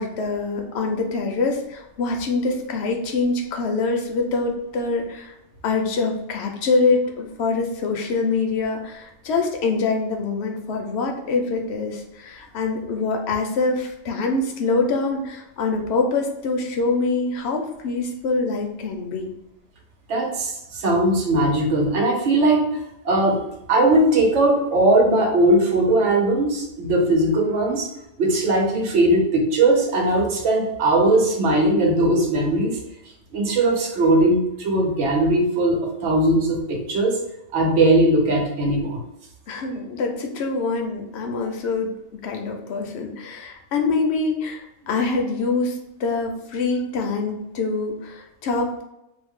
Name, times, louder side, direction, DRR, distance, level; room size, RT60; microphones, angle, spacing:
voice 1, 0.0-5.3 5.6-19.3 39.5-48.8, left 3 dB, 70° left, 2 dB, 0.8 m, -25 dB
voice 2, 20.1-22.7 23.0-23.4 23.7-27.9 28.2-32.8 33.3-37.2 37.5-39.0, right 2 dB, 90° right, 0 dB, 1.1 m, -19 dB
2.5 x 2.0 x 3.5 m, 0.87 s
omnidirectional pair, 1.2 m